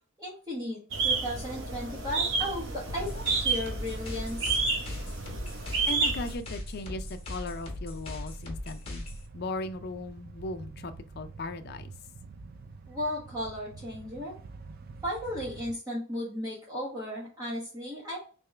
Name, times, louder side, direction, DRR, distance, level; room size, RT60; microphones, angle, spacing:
voice 1, 0.2-4.6 12.9-14.3 15.0-18.2, left 1 dB, 15° right, -5 dB, 1.0 m, -35 dB
sound 1, 0.9-6.3, right 4 dB, 60° right, 0.8 m, -30 dB
sound 2, 2.5-15.7, right 3 dB, 45° right, 0.4 m, -48 dB
sound 3, 2.9-9.3, left 1 dB, 25° left, 1.2 m, -39 dB
voice 2, 5.9-9.0 9.3-11.9, left 2 dB, 50° left, 9 dB, 0.4 m, -37 dB
3.5 x 2.9 x 3.3 m, 0.38 s
head